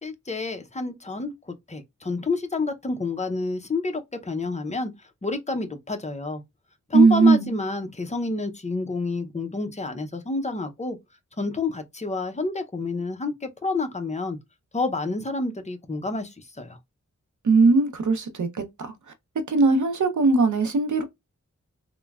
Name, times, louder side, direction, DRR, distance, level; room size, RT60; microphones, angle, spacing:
voice 1, 0.0-4.9 5.2-6.4 6.9-11.0 11.4-14.4 14.7-16.8, left 3 dB, 25° left, 0.6 m, -29 dB
voice 2, 6.9-7.5 17.4-18.9 19.5-21.0, right 4 dB, 80° right, 0.7 m, -19 dB
3.0 x 2.2 x 2.3 m
wide cardioid pair, 70°, 29 cm